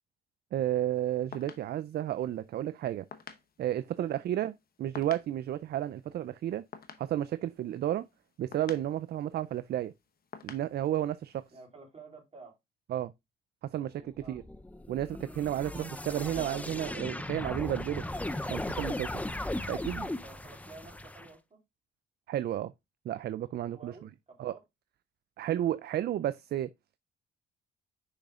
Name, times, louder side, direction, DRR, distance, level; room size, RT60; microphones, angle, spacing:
voice 1, 0.5-3.1 3.6-6.6 7.0-8.1 8.4-9.9 10.4-11.4 12.9-13.1 13.6-14.4 14.9-18.0 18.5-19.2 19.7-20.1 22.3-22.7 23.1-23.9 24.4-24.5 25.4-26.7, right 12 dB, 55° right, 0.4 m, -32 dB
sound 1, 0.9-11.6, left 7 dB, 50° left, 0.9 m, -52 dB
voice 2, 11.5-12.5 13.9-14.4 20.0-21.6 23.6-24.6, right 3 dB, 30° right, 3.6 m, -52 dB
sound 2, 14.2-21.3, left 1 dB, 5° left, 0.5 m, -37 dB
6.5 x 6.1 x 2.4 m
cardioid pair, 90°, 20 cm